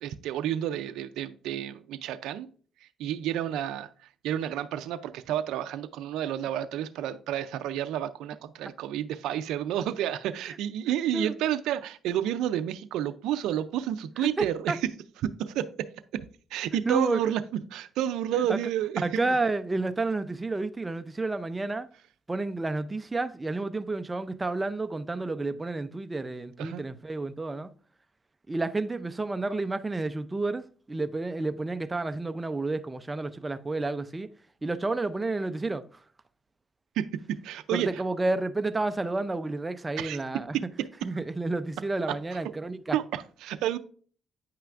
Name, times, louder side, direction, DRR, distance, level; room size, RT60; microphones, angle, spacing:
voice 1, 0.0-2.5 3.0-3.9 4.2-14.9 15.2-15.9 16.1-16.2 16.5-17.4 17.7-19.2 26.6-26.8 37.0-37.1 37.4-38.0 40.0-40.2 40.5-40.6 42.9-43.8, right 11 dB, 90° right, 0.4 m, -30 dB
voice 2, 14.2-14.8 16.7-17.2 18.5-18.6 19.0-21.9 22.3-27.7 28.5-30.6 30.9-34.3 34.6-35.8 37.7-40.6 41.0-43.0, right 2 dB, 20° right, 0.5 m, -30 dB
8.9 x 5.6 x 2.5 m
cardioid pair, 90°, 0 cm